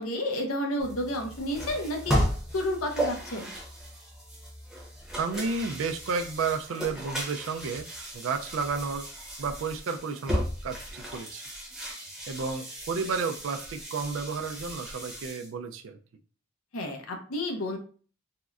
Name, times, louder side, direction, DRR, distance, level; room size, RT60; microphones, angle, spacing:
voice 1, 0.0-2.2 2.5-3.5 16.7-17.8, left 1 dB, 90° left, 3 dB, 0.7 m, -31 dB
sound 1, 0.8-15.5, equal, ahead, 0.7 m, -35 dB
voice 2, 5.2-7.9 8.1-9.1 9.4-11.4 12.3-16.0, right 4 dB, 65° right, 6 dB, 0.3 m, -32 dB
3.6 x 2.1 x 2.3 m, 0.39 s
head